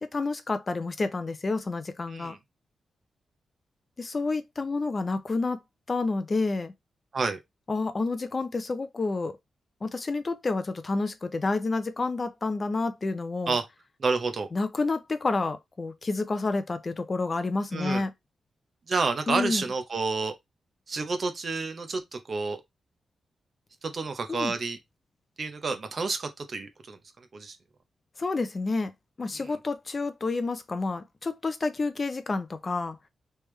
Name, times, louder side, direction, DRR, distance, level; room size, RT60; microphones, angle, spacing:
voice 1, 0.0-2.4 4.0-5.6 5.9-6.7 7.7-9.4 9.8-13.6 14.5-18.1 19.3-19.6 24.3-24.5 28.2-28.9 29.2-33.0, left 3 dB, 25° left, 0.5 m, -29 dB
voice 2, 14.0-14.5 17.7-18.0 18.9-20.3 20.9-22.6 23.8-24.8 25.4-27.0 27.3-27.6, right 4 dB, 40° right, 0.6 m, -29 dB
3.4 x 3.3 x 3.1 m
wide cardioid pair, 170°, 0 cm